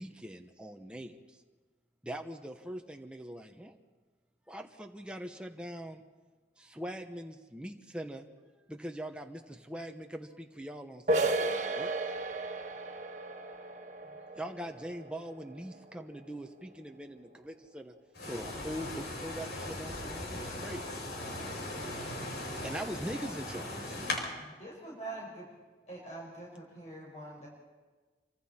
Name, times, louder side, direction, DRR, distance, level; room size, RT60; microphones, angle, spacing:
voice 1, 0.0-1.4 2.0-3.7 4.5-6.0 6.6-8.3 8.7-11.9 14.0-17.9 18.2-20.8 22.6-24.0, equal, 5° right, 3 dB, 1.0 m, -42 dB
sound 1, 11.1-16.6, right 2 dB, 40° right, 1.7 m, -34 dB
voice 2, 18.1-24.2, left 2 dB, 75° left, -1 dB, 7.6 m, -38 dB
voice 3, 24.6-25.5 25.9-27.5, right 2 dB, 40° left, -3 dB, 5.6 m, -44 dB
27.5 x 25.0 x 4.4 m, 1.3 s
head